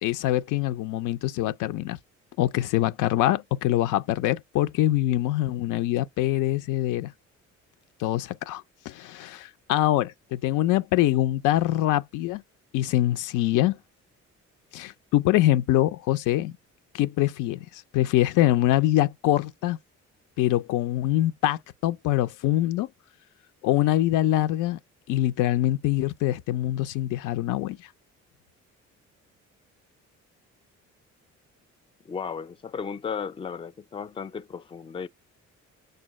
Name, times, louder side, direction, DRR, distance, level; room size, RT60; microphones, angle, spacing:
voice 1, 0.0-2.0 2.4-7.1 8.0-12.4 12.7-13.8 14.7-16.5 16.9-19.8 20.4-22.9 23.6-24.8 25.1-27.8, left 14 dB, 90° left, 0.5 m, -24 dB
voice 2, 32.1-35.1, left 6 dB, 20° left, 0.3 m, -35 dB
6.4 x 2.2 x 3.1 m
cardioid pair, 90°, 30 cm